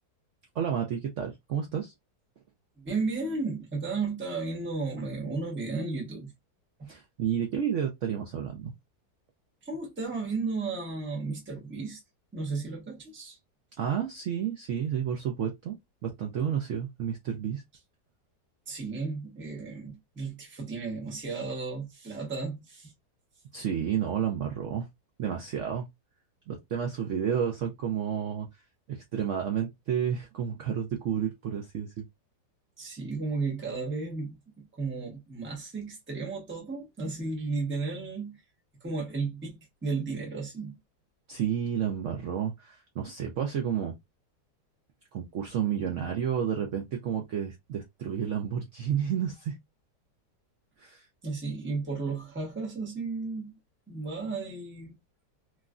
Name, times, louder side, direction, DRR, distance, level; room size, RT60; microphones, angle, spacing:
voice 1, 0.5-1.9 6.9-8.7 13.8-15.8 16.0-17.6 23.5-24.9 25.2-25.9 26.5-28.5 28.9-32.0 41.3-43.9 45.1-49.6 50.8-51.0, right 8 dB, 70° right, 0.7 m, -31 dB
voice 2, 2.8-6.3 6.8-6.9 9.6-12.0 12.3-13.4 18.7-22.9 32.8-38.4 38.8-40.8 51.2-53.5 53.9-55.0, right 4 dB, 10° right, 0.6 m, -34 dB
3.1 x 2.4 x 2.3 m
omnidirectional pair, 1.8 m